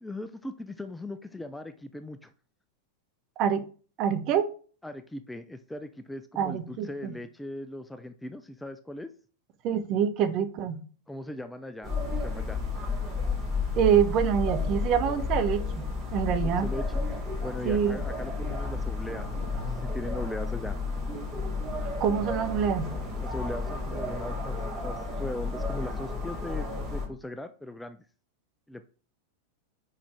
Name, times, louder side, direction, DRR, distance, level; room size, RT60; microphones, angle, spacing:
voice 1, 0.0-2.3 4.8-9.1 11.1-12.6 16.4-19.3 19.5-20.8 23.2-24.6 24.8-28.0 28.7-28.8, left 1 dB, 5° left, 9 dB, 0.4 m, -39 dB
voice 2, 4.0-4.5 6.4-7.1 9.6-10.8 13.8-16.7 17.6-18.0 22.0-22.9, right 8 dB, 40° right, 9 dB, 0.9 m, -26 dB
sound 1, 11.8-27.1, left 3 dB, 15° right, 3.4 m, -32 dB
5.1 x 5.0 x 4.8 m, 0.40 s
figure-of-eight pair, 90°, 0 cm